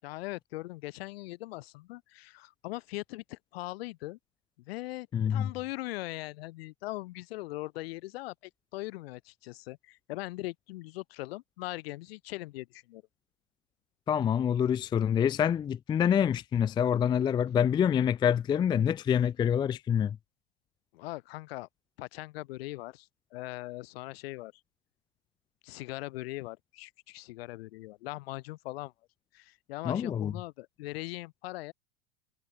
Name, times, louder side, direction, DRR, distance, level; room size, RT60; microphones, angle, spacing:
voice 1, 0.0-4.2 4.6-13.0 20.9-21.7 22.0-24.5 25.6-28.9 29.3-31.7, left 19 dB, 60° left, 5.4 m, -40 dB
voice 2, 5.1-5.5 14.1-20.2 29.9-30.3, left 8 dB, 15° left, 0.5 m, -26 dB
supercardioid pair, 130°, 33 cm